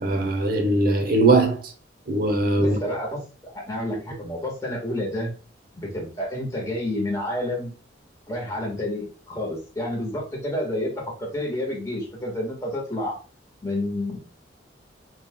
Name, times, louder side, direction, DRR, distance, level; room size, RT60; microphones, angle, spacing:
voice 1, 0.0-1.6 2.1-2.8, right 2 dB, 50° right, 0.9 m, -20 dB
voice 2, 2.6-5.3 5.7-7.7 8.3-13.2 13.6-14.2, left 1 dB, 15° left, 1.5 m, -29 dB
5.7 x 2.6 x 2.2 m
head